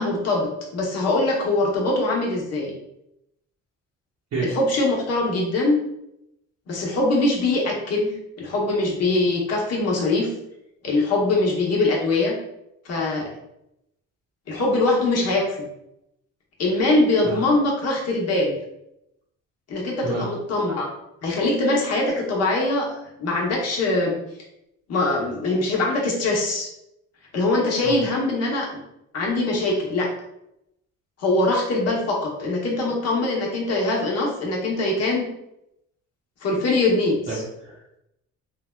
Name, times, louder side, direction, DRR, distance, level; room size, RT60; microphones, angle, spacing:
voice 1, 0.0-2.7 4.4-5.8 6.7-10.3 10.8-12.3 12.8-13.3 14.5-15.6 16.6-18.5 19.7-20.9 21.2-24.2 24.9-26.7 27.3-28.7 29.1-30.1 31.2-35.3 36.4-37.4, left 2 dB, 55° left, -2 dB, 0.9 m, -22 dB
voice 2, 37.3-38.0, right 3 dB, 60° right, -5 dB, 0.8 m, -30 dB
3.2 x 2.2 x 2.2 m, 0.84 s
cardioid pair, 90°, 30 cm